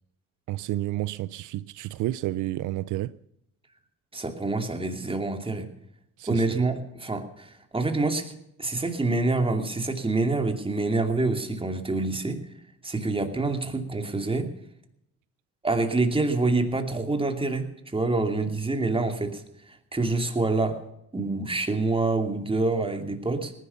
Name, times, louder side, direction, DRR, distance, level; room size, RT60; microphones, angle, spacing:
voice 1, 0.5-3.1 6.2-6.5 18.3-18.4, right 15 dB, 85° right, 0.5 m, -30 dB
voice 2, 4.1-5.7 6.3-8.3 8.6-12.4 12.8-14.5 15.6-19.4 19.9-20.8 21.1-23.5, right 3 dB, 20° right, 2.7 m, -26 dB
18.5 x 11.0 x 7.0 m
cardioid pair, 90°, 30 cm